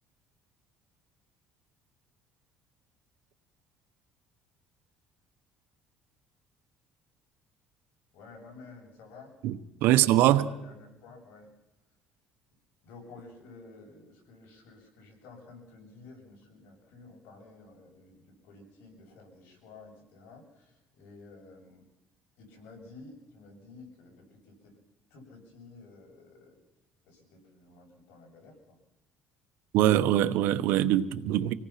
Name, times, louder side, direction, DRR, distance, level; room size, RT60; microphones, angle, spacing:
voice 1, 8.1-9.4 9.9-10.0 10.2-11.5 12.8-21.8 22.4-24.7 25.1-26.6 27.0-28.8, left 3 dB, 80° left, 7.5 m, -52 dB
voice 2, 9.4-10.5 29.7-31.5, right 13 dB, 80° right, 1.1 m, -23 dB
26.0 x 18.0 x 5.9 m
cardioid pair, 110°, 3 cm